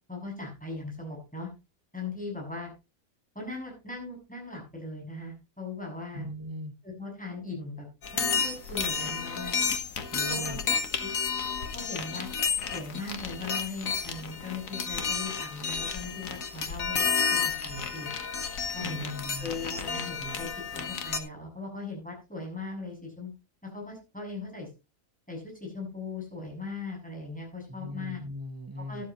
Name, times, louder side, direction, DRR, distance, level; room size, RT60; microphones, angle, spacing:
voice 1, 0.1-1.5 1.9-2.7 3.3-6.3 6.8-7.9 8.1-9.6 10.2-10.6 11.0-11.1 11.7-12.3 12.7-18.1 18.7-19.1 19.4-20.5 20.8-23.3 23.6-24.7 25.3-28.2 28.9-29.1, left 3 dB, 5° left, -1 dB, 6.8 m, -39 dB
voice 2, 6.1-6.7 10.1-10.6 18.8-19.5 27.7-29.0, equal, 20° right, 7 dB, 0.8 m, -38 dB
sound 1, 8.0-21.2, left 6 dB, 70° left, 1.7 m, -31 dB
12.5 x 12.5 x 3.0 m, 0.29 s
omnidirectional pair, 1.5 m